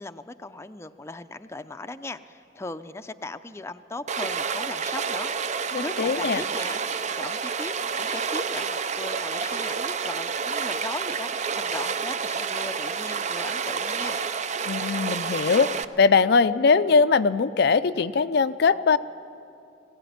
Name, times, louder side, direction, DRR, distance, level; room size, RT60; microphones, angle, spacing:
voice 1, 0.0-5.3 5.8-6.8 7.2-14.2, left 2 dB, 15° left, 9 dB, 0.5 m, -38 dB
Stream, 4.1-15.8, right 5 dB, 40° right, 0.5 m, -29 dB
voice 2, 5.7-6.4 14.7-19.0, left 5 dB, 60° left, 12 dB, 0.5 m, -21 dB
20.5 x 16.5 x 9.3 m, 2.6 s
head